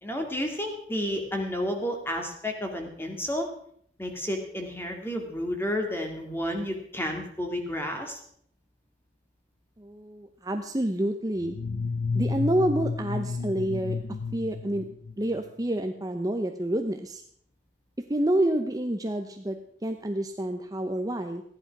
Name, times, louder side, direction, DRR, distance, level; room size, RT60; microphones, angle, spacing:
voice 1, 0.0-3.5 4.0-8.2, equal, 10° left, 3 dB, 2.3 m, -31 dB
voice 2, 9.8-11.6 12.1-14.0 14.3-14.8 15.2-17.2 18.0-21.4, right 1 dB, 20° right, 5 dB, 0.8 m, -28 dB
sound 1, 11.4-15.5, left 4 dB, 85° left, 0.7 m, -31 dB
15.0 x 11.0 x 5.9 m, 0.65 s
head